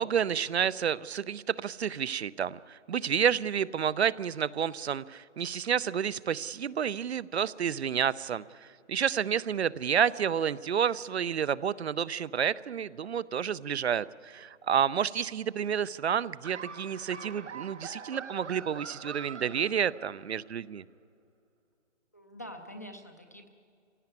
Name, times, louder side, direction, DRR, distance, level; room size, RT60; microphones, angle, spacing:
voice 1, 0.0-20.8, right 8 dB, 65° right, 18 dB, 0.7 m, -30 dB
Laughter, 16.4-20.5, right 6 dB, 85° right, 1.6 m, -44 dB
voice 2, 22.1-23.5, equal, 15° left, 5 dB, 0.5 m, -45 dB
23.5 x 17.0 x 9.6 m, 2.4 s
hypercardioid pair, 170°, 35 cm